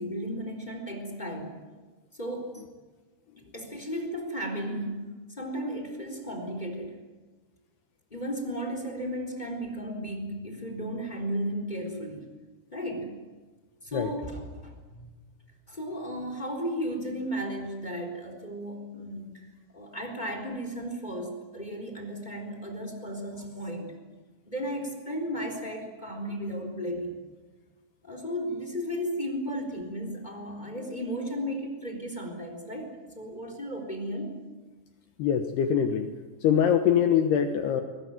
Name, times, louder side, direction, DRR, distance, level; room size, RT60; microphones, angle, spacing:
voice 1, 0.0-1.6 2.2-2.5 3.5-5.1 5.4-7.0 8.1-12.3 12.7-13.1 13.8-15.0 15.7-19.4 19.7-23.9 24.5-27.1 28.0-34.4, equal, 10° left, 4 dB, 3.3 m, -34 dB
voice 2, 35.2-36.1 36.4-37.8, left 8 dB, 70° left, 6 dB, 2.9 m, -23 dB
23.0 x 19.5 x 9.3 m, 1.3 s
omnidirectional pair, 5.4 m